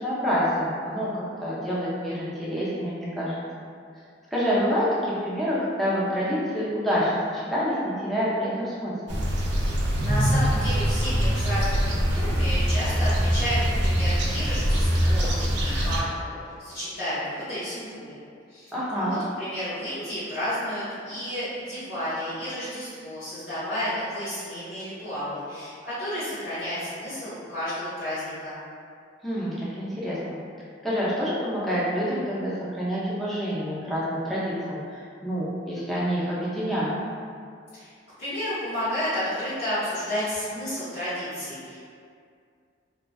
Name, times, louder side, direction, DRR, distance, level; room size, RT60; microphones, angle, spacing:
voice 1, 0.0-3.4 4.3-9.2 18.7-19.2 29.2-30.4 30.8-36.9, equal, ahead, -9 dB, 0.5 m, -27 dB
sound 1, 9.1-16.0, equal, 65° right, 0.4 m, -23 dB
voice 2, 10.0-15.3 15.6-18.1 18.5-28.6 37.7-37.9 38.2-41.8, equal, 75° left, -16 dB, 1.0 m, -31 dB
2.5 x 2.2 x 2.3 m, 2.3 s
head